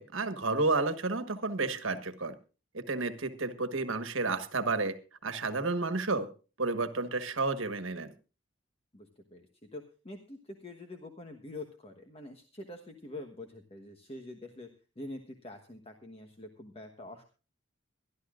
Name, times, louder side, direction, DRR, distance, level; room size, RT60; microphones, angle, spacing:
voice 1, 0.0-2.4 2.7-5.0 5.2-6.3 6.6-8.1, right 3 dB, 80° right, 11 dB, 1.4 m, -31 dB
voice 2, 8.9-14.7 15.0-17.2, left 2 dB, 30° left, 4 dB, 1.2 m, -46 dB
23.5 x 12.0 x 2.5 m, 0.33 s
head